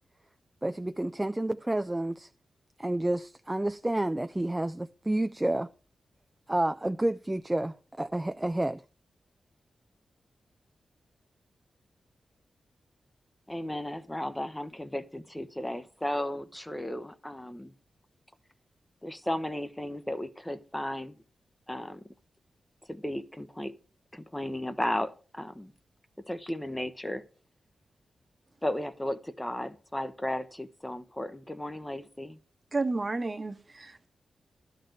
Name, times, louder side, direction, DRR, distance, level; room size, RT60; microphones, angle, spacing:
voice 1, 0.6-2.3 2.8-5.7 6.5-8.8, right 1 dB, 15° right, 0.4 m, -30 dB
voice 2, 13.5-17.7 19.0-21.1 21.7-22.0 22.9-23.7 24.1-25.7 26.3-27.2 28.6-32.4, left 1 dB, 10° left, 0.8 m, -34 dB
voice 3, 32.7-34.1, right 3 dB, 35° right, 1.0 m, -31 dB
11.5 x 4.1 x 7.9 m
cardioid pair, 70°, 0 cm